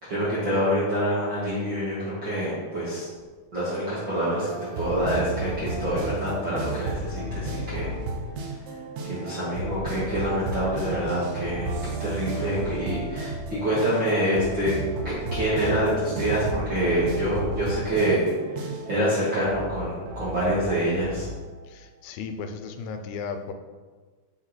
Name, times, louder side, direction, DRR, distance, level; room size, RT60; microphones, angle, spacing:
voice 1, 0.0-3.1 3.5-4.5 4.8-7.9 9.1-14.7 15.0-21.3, equal, 50° right, -10 dB, 1.4 m, -26 dB
sound 1, 4.5-21.3, right 2 dB, 80° right, 2.9 m, -33 dB
voice 2, 21.7-23.5, left 5 dB, 85° left, 7 dB, 2.5 m, -35 dB
7.3 x 4.1 x 4.0 m, 1.4 s
omnidirectional pair, 4.5 m